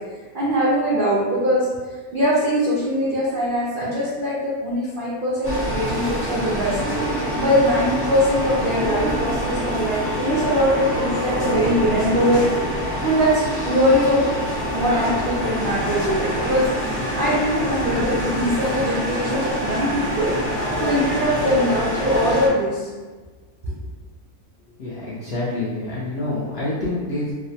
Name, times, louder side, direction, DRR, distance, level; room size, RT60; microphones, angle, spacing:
voice 1, 0.3-1.7 2.1-6.8 7.3-12.5 13.0-14.2 14.7-16.6 17.2-22.9 23.6-23.7, equal, 75° right, -8 dB, 0.4 m, -21 dB
sound 1, 5.4-22.5, equal, 15° left, 0.5 m, -25 dB
voice 2, 24.8-27.3, left 2 dB, 75° left, -7 dB, 0.5 m, -27 dB
2.9 x 2.0 x 2.6 m, 1.4 s
omnidirectional pair, 1.6 m